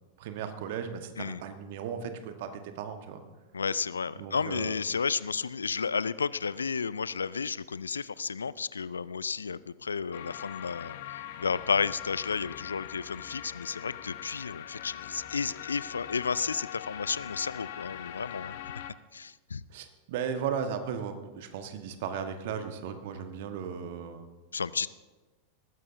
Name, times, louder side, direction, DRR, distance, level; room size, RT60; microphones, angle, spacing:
voice 1, 0.2-3.2 4.2-4.8 19.7-24.3, right 7 dB, 50° right, 7 dB, 1.4 m, -36 dB
voice 2, 3.5-18.6 19.1-19.6 24.5-24.9, left 5 dB, 75° left, 19 dB, 0.3 m, -32 dB
sound 1, 10.1-18.9, left 11 dB, 55° left, 0.7 m, -42 dB
19.5 x 15.0 x 2.7 m, 1.3 s
figure-of-eight pair, 90°, 0 cm